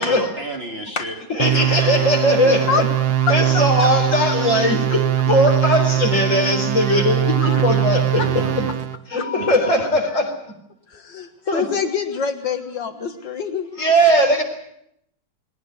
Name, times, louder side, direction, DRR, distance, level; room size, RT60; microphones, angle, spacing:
voice 1, 0.0-2.0 8.2-8.7 9.4-9.5, right 2 dB, 30° right, 4 dB, 2.2 m, -31 dB
voice 2, 1.3-2.9 3.3-8.2 9.1-10.3 11.4-11.7 13.8-14.4, equal, 40° left, 3 dB, 4.5 m, -19 dB
sound 1, 1.4-9.0, right 10 dB, 60° right, 1.6 m, -21 dB
voice 3, 2.2-2.8 3.3-3.4 7.1-7.6 8.2-8.3 9.2-9.3 10.9-13.8, left 6 dB, 70° left, 7 dB, 2.2 m, -26 dB
21.5 x 17.5 x 9.4 m, 0.75 s
omnidirectional pair, 2.1 m